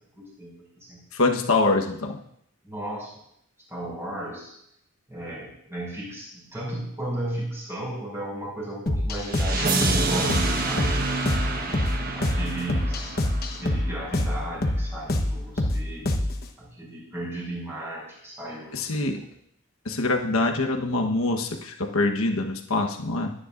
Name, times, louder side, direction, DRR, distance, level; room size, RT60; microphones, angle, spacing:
voice 1, 0.2-1.0 2.6-3.1 3.7-4.5 5.1-10.4 10.7-10.9 11.2-11.4 12.2-13.1 13.6-16.1 16.6-19.2, right 1 dB, 10° right, -5 dB, 5.9 m, -35 dB
voice 2, 1.1-2.2 18.7-19.2 19.8-23.3, left 2 dB, 80° left, 3 dB, 1.2 m, -24 dB
sound 1, 8.9-16.5, left 1 dB, 45° left, 1.1 m, -26 dB
sound 2, 9.2-14.2, right 3 dB, 40° right, 1.3 m, -28 dB
23.5 x 10.0 x 2.6 m, 0.71 s
head